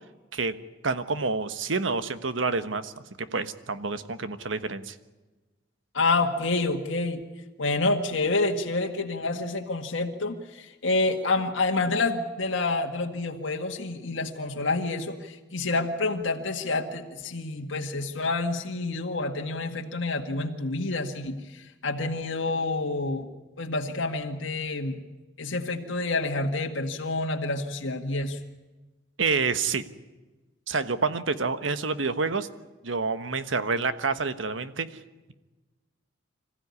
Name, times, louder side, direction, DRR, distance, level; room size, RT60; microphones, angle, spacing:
voice 1, 0.8-3.0 3.3-4.9 29.2-29.8 30.7-32.5 32.8-34.9, right 4 dB, 85° right, 11 dB, 1.3 m, -28 dB
voice 2, 5.9-7.2 7.6-23.3 23.6-25.0 25.4-28.4, left 3 dB, 80° left, 2 dB, 1.9 m, -28 dB
26.0 x 15.5 x 9.7 m, 1.2 s
head